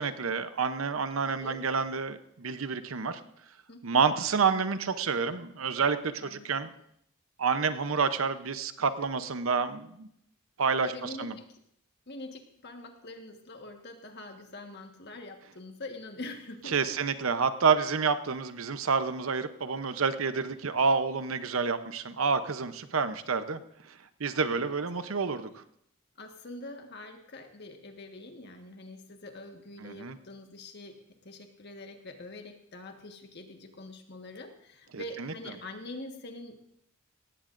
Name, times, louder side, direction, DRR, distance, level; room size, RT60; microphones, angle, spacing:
voice 1, 0.0-3.2 3.8-6.7 7.4-10.1 10.6-10.9 11.2-11.3 16.7-23.6 24.2-25.6 29.8-30.2 34.9-35.3, right 5 dB, 90° right, 11 dB, 0.8 m, -28 dB
voice 2, 3.7-4.0 6.2-6.7 10.8-11.5 12.1-17.0 24.4-24.7 26.2-36.5, left 2 dB, 55° left, 4 dB, 1.5 m, -44 dB
17.5 x 16.0 x 2.6 m, 0.73 s
head